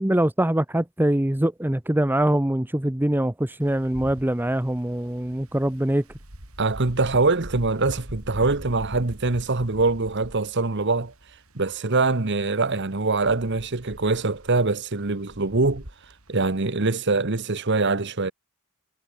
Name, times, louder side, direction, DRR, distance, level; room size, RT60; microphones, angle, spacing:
voice 1, 0.0-6.0, right 1 dB, 10° right, 0.7 m, -23 dB
Wind, 3.6-16.7, equal, 85° right, 6.1 m, -44 dB
voice 2, 6.6-11.1 11.5-15.8 16.3-18.3, right 3 dB, 55° right, 1.3 m, -23 dB
head